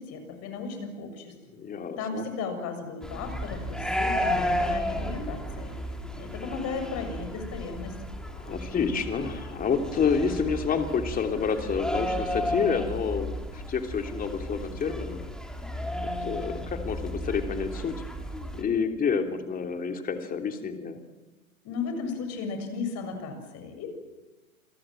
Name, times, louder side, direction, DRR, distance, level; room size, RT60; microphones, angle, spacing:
voice 1, 0.0-1.4 2.0-5.7 6.1-7.9 21.6-23.9, left 4 dB, 35° left, 7 dB, 7.2 m, -35 dB
voice 2, 1.5-2.2 8.3-15.2 16.0-17.9 18.5-21.0, left 6 dB, 20° left, 5 dB, 3.0 m, -29 dB
sound 1, 3.0-18.6, equal, ahead, 3.0 m, -33 dB
29.0 x 23.0 x 7.7 m, 1.2 s
hypercardioid pair, 110°, 43 cm